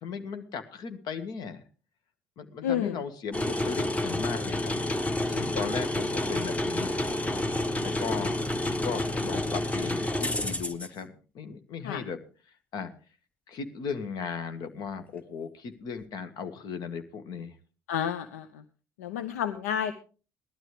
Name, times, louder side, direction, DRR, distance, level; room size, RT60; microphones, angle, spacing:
voice 1, 0.0-1.6 2.4-4.8 5.3-6.9 7.8-12.2 12.7-12.9 13.5-17.5, left 6 dB, 60° left, 9 dB, 1.8 m, -37 dB
voice 2, 2.6-3.0 11.8-12.0 17.9-18.6 19.0-19.9, left 9 dB, 80° left, 10 dB, 0.7 m, -30 dB
sound 1, 3.3-10.9, left 1 dB, 15° left, 1.4 m, -29 dB
18.0 x 12.5 x 3.3 m, 0.36 s
hypercardioid pair, 55°, 8 cm